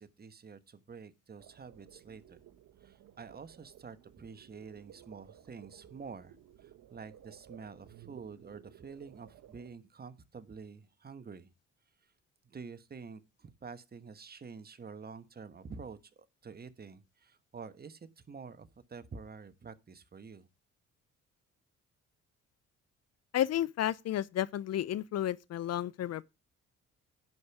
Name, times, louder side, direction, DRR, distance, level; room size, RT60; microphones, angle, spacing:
voice 1, 0.0-2.4 2.8-11.5 12.4-20.5, right 5 dB, 30° right, 1.3 m, -48 dB
sound 1, 1.4-9.7, right 11 dB, 70° right, 1.1 m, -57 dB
voice 2, 23.3-26.2, left 12 dB, 55° left, 0.5 m, -32 dB
10.5 x 5.2 x 7.1 m
cardioid pair, 90°, 30 cm